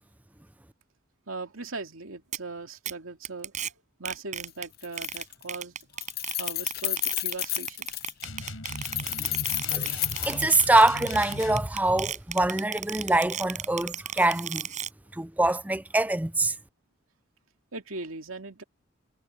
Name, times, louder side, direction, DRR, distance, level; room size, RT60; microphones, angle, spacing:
voice 1, 1.3-3.7 4.0-6.0 6.4-7.9 17.7-18.6, right 3 dB, 85° right, 2.5 m, -39 dB
sound 1, 2.3-2.4 2.9-3.0 3.2-3.7 4.1-4.7 5.0-14.9, right 8 dB, 35° right, 5.7 m, -35 dB
Keys jangling, 4.4-4.5 4.8-5.5 5.8-8.2 8.8-11.0, left 15 dB, 45° left, 0.8 m, -31 dB
sound 2, 8.2-11.7, left 2 dB, 85° left, 4.8 m, -38 dB
voice 2, 9.7-14.7 15.1-16.5, right 2 dB, 10° right, 0.5 m, -24 dB
head